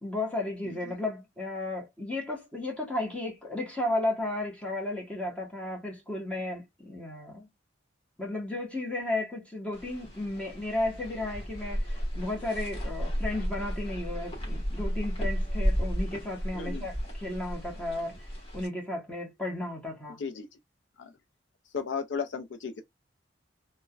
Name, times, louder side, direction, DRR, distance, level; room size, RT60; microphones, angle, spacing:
voice 1, 0.0-7.5 8.2-18.3 18.5-20.2, left 2 dB, 5° left, 1.0 m, -34 dB
sound 1, 9.7-18.7, equal, 30° left, 1.1 m, -33 dB
voice 2, 16.5-16.9 20.2-20.5 21.0-21.1 21.7-22.8, left 5 dB, 70° left, 0.4 m, -35 dB
3.3 x 2.1 x 2.2 m
head